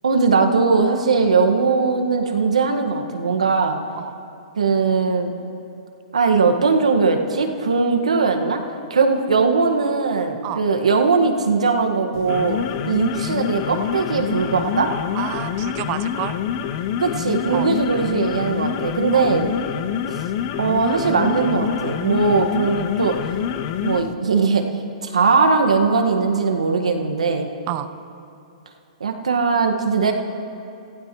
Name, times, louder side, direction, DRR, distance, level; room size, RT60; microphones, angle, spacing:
voice 1, 0.0-3.8 4.6-5.3 6.1-8.6 8.9-12.6 12.9-14.9 17.0-19.5 20.6-23.2 23.8-24.6 25.0-27.6 29.0-30.1, right 4 dB, 85° right, 5 dB, 1.6 m, -19 dB
sound 1, 12.1-24.1, left 9 dB, 45° left, 0.8 m, -26 dB
voice 2, 15.1-16.4 17.5-17.7 19.1-19.3 27.7-27.9, right 13 dB, 40° right, 11 dB, 0.8 m, -29 dB
28.5 x 16.0 x 3.1 m, 2.7 s
hypercardioid pair, 125°, 3 cm